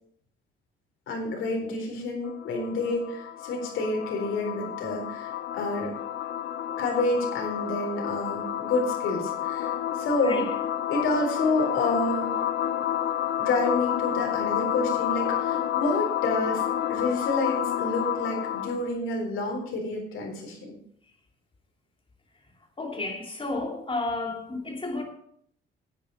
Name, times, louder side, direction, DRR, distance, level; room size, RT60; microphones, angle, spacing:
voice 1, 1.1-5.9 6.8-10.5 10.9-12.4 13.4-16.6 16.9-20.7, left 2 dB, 85° left, 3.9 m, -29 dB
sound 1, 2.2-18.9, left 11 dB, 65° left, 0.7 m, -30 dB
voice 2, 22.8-25.0, left 2 dB, 25° left, 3.0 m, -32 dB
10.0 x 8.9 x 5.7 m
cardioid pair, 90°, 20 cm